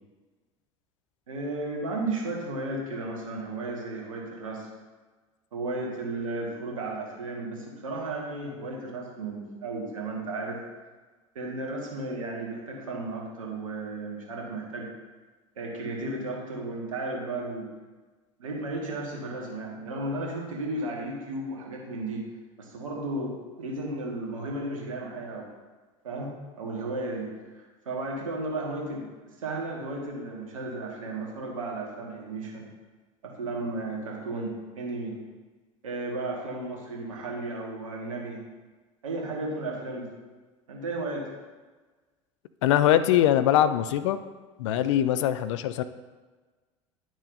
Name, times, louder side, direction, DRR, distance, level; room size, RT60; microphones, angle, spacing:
voice 1, 1.3-4.7 5.5-10.6 11.3-14.9 15.5-17.7 18.4-22.3 22.6-25.5 26.0-29.0 29.4-32.7 33.2-35.2 35.8-38.4 39.0-40.1 40.7-41.3, right 2 dB, 75° right, -1 dB, 1.6 m, -34 dB
voice 2, 42.6-44.2 44.6-45.8, left 11 dB, 65° left, 12 dB, 0.5 m, -22 dB
10.5 x 6.1 x 2.6 m, 1.3 s
figure-of-eight pair, 75°, 17 cm